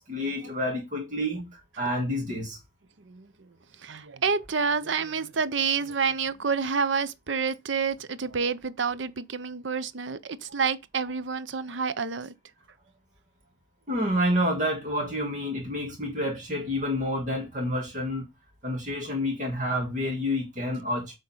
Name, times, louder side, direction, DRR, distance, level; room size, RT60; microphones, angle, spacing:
voice 1, 0.0-2.6 13.9-18.3 18.6-21.1, equal, 40° right, 1.7 m, -29 dB
voice 2, 3.0-3.5 3.8-12.3, right 5 dB, 80° right, 0.7 m, -28 dB
8.8 x 3.7 x 5.6 m
head